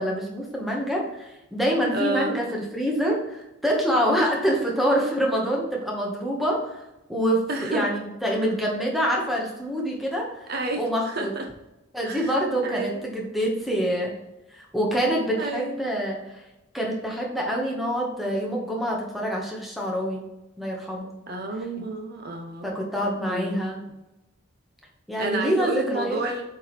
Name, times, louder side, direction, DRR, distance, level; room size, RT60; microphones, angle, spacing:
voice 1, 0.0-6.8 7.1-10.5 10.8-11.3 11.9-14.1 14.5-16.4 16.7-20.2 20.6-21.1 22.6-23.8 25.1-26.2, equal, ahead, -2 dB, 1.2 m, -26 dB
voice 2, 1.9-2.4 7.5-7.9 10.5-11.5 12.0-13.0 15.4-15.8 21.3-22.7 23.3-23.6 25.2-26.4, right 2 dB, 45° right, 3 dB, 0.6 m, -30 dB
7.8 x 4.7 x 3.2 m, 0.97 s
head